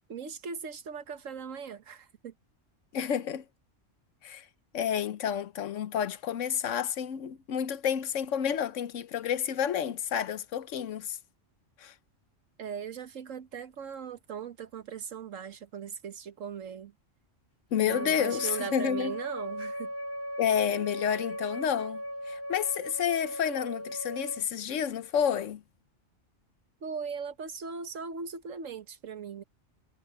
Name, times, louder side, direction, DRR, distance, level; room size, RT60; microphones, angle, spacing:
voice 1, 0.1-2.3 12.6-16.9 17.8-19.9 26.8-29.4, right 6 dB, 85° right, 1.6 m, -39 dB
voice 2, 2.9-3.4 4.2-4.5 4.7-11.2 11.8-11.9 17.7-19.1 20.4-25.6, left 8 dB, 80° left, 1.2 m, -30 dB
Wind instrument woodwind instrument, 17.9-24.4, equal, 50° left, 2.8 m, -37 dB
omnidirectional pair, 1.3 m